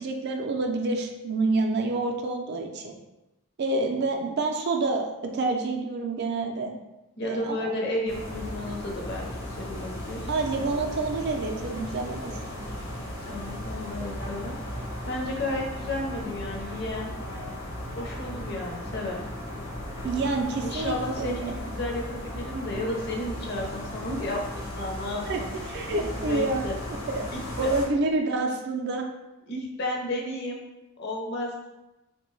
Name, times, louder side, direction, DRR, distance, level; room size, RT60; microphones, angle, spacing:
voice 1, 0.0-2.9 3.6-6.7 7.2-7.7 10.3-12.3 20.0-21.5 25.3-25.4 25.7-26.6 27.1-27.3 27.6-29.1, right 3 dB, 55° right, 2 dB, 0.4 m, -28 dB
voice 2, 7.2-10.3 13.3-14.6 15.1-17.1 18.0-19.2 20.6-25.5 26.2-26.8 27.3-27.7 29.5-30.6 31.0-31.7, left 1 dB, 55° left, 0 dB, 0.6 m, -32 dB
sound 1, 8.1-27.9, left 1 dB, 80° left, 1.0 m, -36 dB
3.0 x 2.2 x 3.1 m, 0.98 s
head